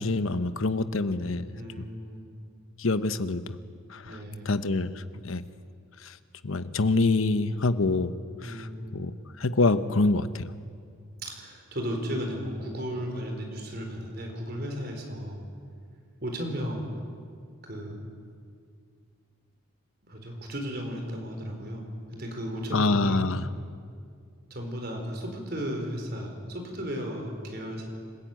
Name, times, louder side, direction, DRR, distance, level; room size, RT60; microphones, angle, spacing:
voice 1, 0.0-1.4 1.8-1.9 2.8-3.4 3.9-4.0 4.5-4.9 5.2-5.4 6.4-8.1 8.4-8.7 8.9-9.1 9.4-10.5 22.7-23.4, left 3 dB, 75° left, 12 dB, 0.9 m, -25 dB
voice 2, 1.5-2.3 4.0-4.5 8.4-9.0 11.2-15.4 16.2-16.9 17.6-18.1 20.0-23.2 24.5-27.9, equal, 45° right, 2 dB, 4.3 m, -35 dB
26.5 x 15.0 x 9.2 m, 2.2 s
head